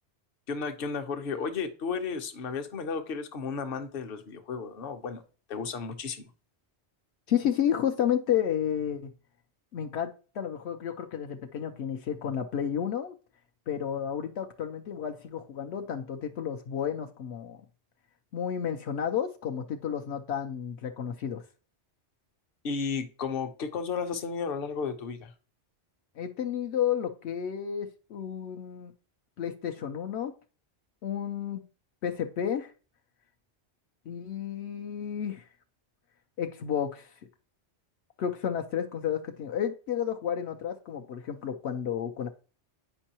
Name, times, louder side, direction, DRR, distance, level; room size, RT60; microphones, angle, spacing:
voice 1, 0.5-5.2 5.5-6.2 22.6-25.3, left 5 dB, 60° left, 8 dB, 1.0 m, -33 dB
voice 2, 7.3-9.1 9.7-13.1 13.7-17.6 18.3-21.4 26.2-28.9 29.4-30.3 31.0-31.6 32.0-32.7 34.1-35.5 36.4-37.2 38.2-42.3, left 9 dB, 75° left, 5 dB, 0.9 m, -31 dB
8.9 x 5.3 x 2.9 m, 0.37 s
omnidirectional pair, 1.2 m